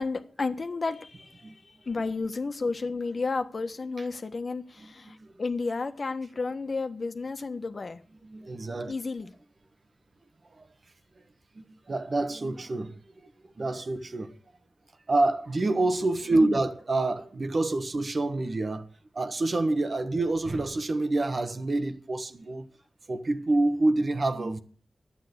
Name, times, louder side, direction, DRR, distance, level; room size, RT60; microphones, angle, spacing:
voice 1, 0.0-8.0 8.9-9.3 16.3-16.6, left 3 dB, 60° left, 1.3 m, -32 dB
voice 2, 8.3-8.9 10.5-10.7 11.5-14.4 15.1-18.9 19.1-22.7 23.1-24.6, right 2 dB, 55° right, 1.4 m, -27 dB
11.0 x 8.6 x 8.1 m
cardioid pair, 55°, 0 cm